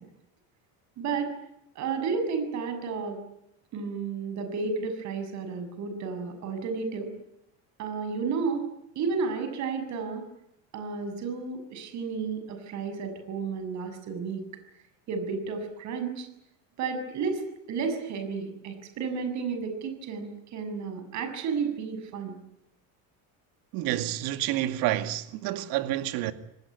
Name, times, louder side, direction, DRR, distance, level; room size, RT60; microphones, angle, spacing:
voice 1, 1.0-1.3 1.8-3.2 3.7-7.1 7.8-8.7 9.0-10.2 10.7-14.4 15.1-16.3 16.8-22.4, right 5 dB, 45° right, 7.0 m, -32 dB
voice 2, 23.7-26.3, right 14 dB, 65° right, 2.3 m, -29 dB
27.5 x 19.5 x 9.8 m
cardioid pair, 155°, 39 cm